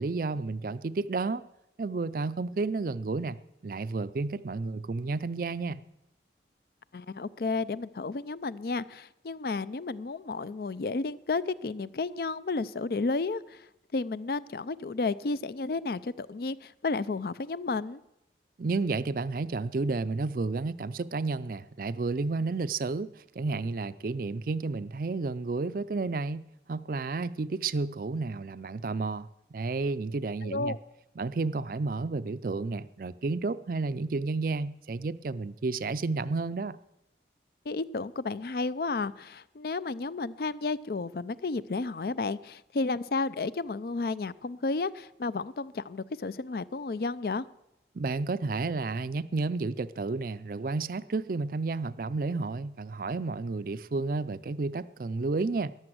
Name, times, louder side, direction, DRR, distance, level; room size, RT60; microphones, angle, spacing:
voice 1, 0.0-1.5 1.8-5.8 18.6-30.8 31.2-36.8 47.9-55.7, right 3 dB, 50° right, 0.4 m, -31 dB
voice 2, 6.9-13.6 13.9-18.0 30.4-30.8 37.7-47.5, left 3 dB, 55° left, 0.4 m, -32 dB
14.0 x 10.5 x 7.8 m
head